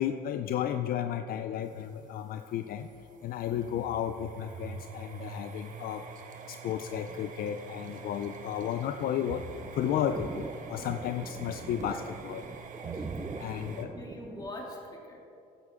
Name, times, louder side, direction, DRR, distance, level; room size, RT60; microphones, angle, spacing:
voice 1, 0.0-2.9 3.2-6.0 6.5-9.4 9.7-12.5 12.9-13.0 13.4-14.0, left 10 dB, 60° left, 8 dB, 0.5 m, -33 dB
sound 1, 1.6-13.9, right 5 dB, 50° right, 1.3 m, -45 dB
sound 2, 9.5-14.5, right 4 dB, 20° right, 0.5 m, -42 dB
voice 2, 11.7-12.0 13.3-15.2, left 1 dB, 25° left, -1 dB, 2.5 m, -44 dB
15.0 x 10.5 x 3.7 m, 2.7 s
cardioid pair, 110°, 17 cm